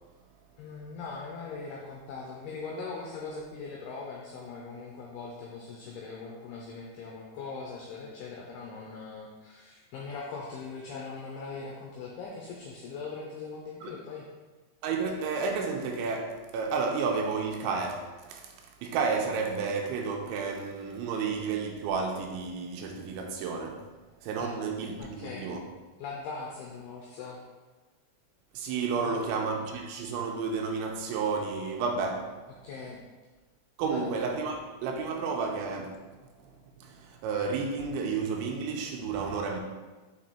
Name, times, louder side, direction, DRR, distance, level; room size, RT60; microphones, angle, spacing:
voice 1, 0.6-14.3 24.4-24.6 25.0-25.5 26.0-27.4 29.0-29.2 32.6-33.0 33.8-34.1, left 4 dB, 85° left, 2.3 m, -40 dB
voice 2, 14.8-18.6 18.8-23.9 24.2-25.6 28.5-32.3 33.8-34.6 34.8-36.0 36.4-39.6, right 5 dB, 85° right, 2.9 m, -31 dB
6.2 x 4.7 x 4.2 m
omnidirectional pair, 5.4 m